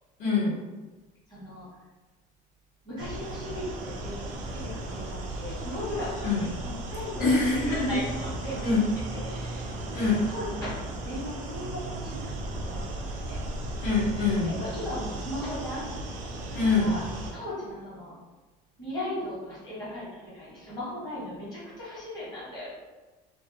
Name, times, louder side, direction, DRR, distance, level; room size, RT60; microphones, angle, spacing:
voice 1, 0.2-0.6 6.2-6.4 7.2-8.0 8.6-8.8 9.9-10.2 13.8-14.6 16.5-17.0, left 3 dB, 50° left, -7 dB, 0.9 m, -24 dB
voice 2, 1.3-1.7 2.8-4.2 4.5-7.3 7.9-8.7 9.1-13.4 14.4-16.2 16.5-17.0 17.3-18.1 18.8-22.7, left 1 dB, 20° left, -9 dB, 1.1 m, -37 dB
sound 1, 3.0-17.3, right 1 dB, 45° right, 0.4 m, -36 dB
2.4 x 2.1 x 2.8 m, 1.2 s
cardioid pair, 180°, 19 cm